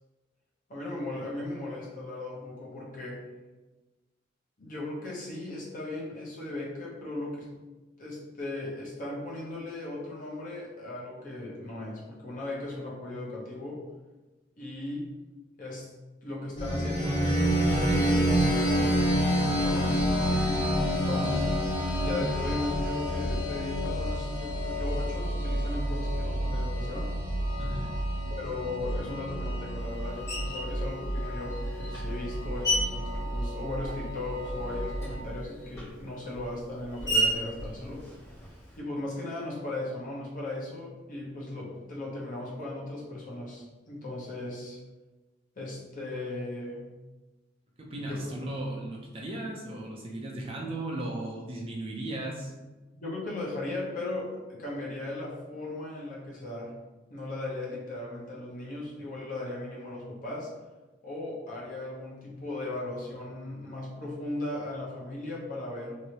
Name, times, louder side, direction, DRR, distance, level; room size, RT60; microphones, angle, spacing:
voice 1, 0.7-3.2 4.6-7.5 8.0-13.8 14.6-15.1 15.6-15.9 16.2-20.1 20.9-21.5 22.0-27.1 28.3-38.0 38.8-44.8 45.6-46.8 48.0-48.2 52.9-56.7 57.1-60.5 61.0-66.0, left 2 dB, 45° left, -5 dB, 0.9 m, -37 dB
sound 1, 16.6-35.2, equal, 75° left, 1.2 m, -29 dB
voice 2, 27.6-28.2 47.8-52.5, right 1 dB, 30° right, -2 dB, 0.5 m, -36 dB
Screech, 30.3-30.7 31.5-34.2 34.5-38.8, right 1 dB, 20° left, 1.4 m, -33 dB
3.0 x 2.7 x 2.8 m, 1.2 s
head